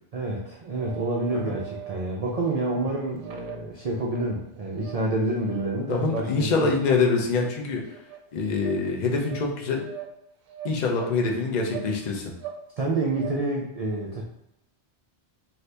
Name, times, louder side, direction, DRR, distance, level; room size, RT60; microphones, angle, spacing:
voice 1, 0.1-6.7 12.8-14.2, right 2 dB, 55° right, -2 dB, 0.4 m, -28 dB
sound 1, 0.8-2.0 2.5-2.8 3.2-4.3 4.7-5.0 5.3-5.7 6.1-6.3 6.7-7.0 7.4-7.5 7.9-8.2 8.6-8.7 9.2-9.4 9.7-10.1 10.5-11.2 11.7-11.9 12.2-12.6 12.9-13.3, right 10 dB, 70° right, 0.8 m, -40 dB
voice 2, 5.9-7.8 8.3-9.9 10.6-12.3, left 4 dB, 50° left, 1 dB, 0.6 m, -25 dB
2.7 x 2.7 x 3.3 m, 0.83 s
omnidirectional pair, 1.2 m